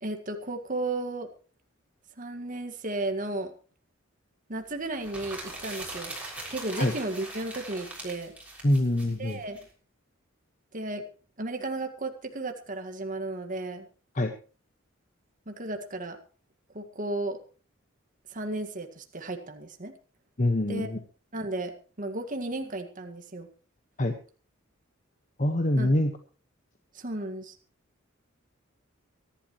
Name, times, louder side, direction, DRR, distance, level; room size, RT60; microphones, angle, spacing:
voice 1, 0.0-1.3 2.2-3.5 4.5-6.1 6.5-8.3 9.2-9.6 10.7-11.0 11.4-13.9 15.5-16.2 16.7-17.4 18.3-19.9 20.7-20.9 21.3-21.7 22.0-23.5 25.8-25.9 26.9-27.6, right 2 dB, 40° right, 5 dB, 1.9 m, -34 dB
sound 1, 4.9-9.6, right 2 dB, 5° right, 6.4 m, -41 dB
voice 2, 8.6-9.4 14.2-14.3 20.4-21.0 24.0-24.1 25.4-26.1, left 1 dB, 40° left, 6 dB, 1.4 m, -24 dB
24.0 x 12.0 x 3.1 m, 0.38 s
head